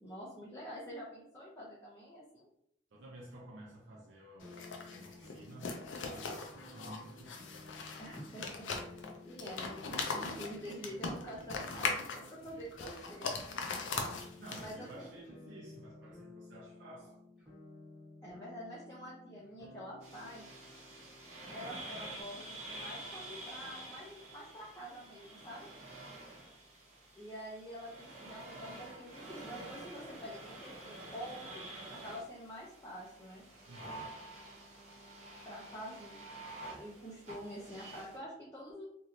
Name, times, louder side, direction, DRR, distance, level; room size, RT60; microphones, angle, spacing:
voice 1, 0.0-2.5 8.0-8.7 9.2-13.8 14.6-15.1 18.2-20.5 21.5-25.7 27.2-33.4 35.5-36.2 36.7-38.8, equal, 15° left, 0.6 m, -47 dB
voice 2, 2.9-7.7 14.4-17.2 33.7-34.1, right 1 dB, 75° right, 0.6 m, -52 dB
sound 1, 4.4-14.9, left 4 dB, 85° left, 0.5 m, -40 dB
sound 2, 4.4-22.2, left 2 dB, 5° right, 1.0 m, -55 dB
sound 3, 20.0-38.2, right 2 dB, 35° right, 0.8 m, -49 dB
3.1 x 2.6 x 2.6 m
head